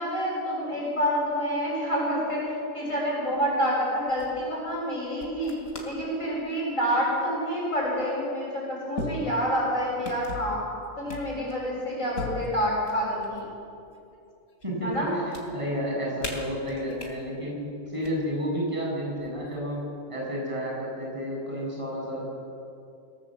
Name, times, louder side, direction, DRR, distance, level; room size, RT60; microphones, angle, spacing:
voice 1, 0.0-2.4 2.7-5.5 5.8-10.6 11.0-13.5 14.8-15.1, equal, 65° left, -5 dB, 7.7 m, -28 dB
sound 1, 3.3-3.7 4.1-4.4 5.2-6.1 6.5-6.8 7.8-7.9 8.9-9.7 10.0-10.5 11.1-11.7 12.1-13.5 13.9-14.6 14.9-15.4 16.2-17.1 17.8-18.1 19.2-19.7, left 2 dB, 90° left, 3.7 m, -38 dB
voice 2, 15.5-17.6 17.9-19.8 20.1-22.2, equal, 20° right, -3 dB, 7.6 m, -31 dB
26.0 x 17.5 x 7.8 m, 2.6 s
omnidirectional pair, 1.4 m